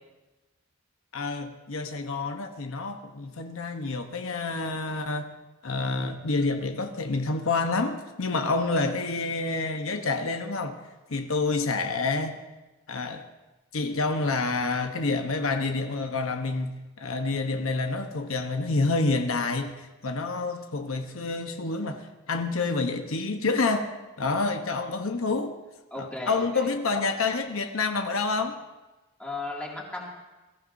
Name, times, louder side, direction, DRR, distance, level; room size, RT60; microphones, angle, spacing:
voice 1, 1.1-5.3 5.6-10.8 11.1-12.4 12.9-13.2 13.7-25.6 25.9-28.6, left 3 dB, 80° left, 0.9 m, -28 dB
voice 2, 25.9-26.7 29.2-30.1, left 2 dB, 5° left, 2.3 m, -36 dB
21.5 x 14.0 x 2.7 m
head